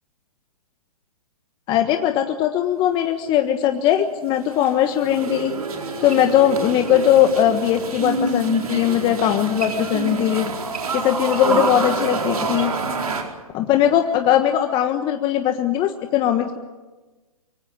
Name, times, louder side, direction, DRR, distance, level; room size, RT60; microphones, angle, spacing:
voice 1, 1.7-5.5 6.0-10.5 10.9-12.7 13.5-16.6, left 11 dB, 25° left, 6 dB, 1.4 m, -19 dB
sound 1, 4.3-13.2, right 4 dB, 80° right, 4.6 m, -27 dB
24.0 x 17.0 x 9.8 m, 1.2 s
hypercardioid pair, 130°, 19 cm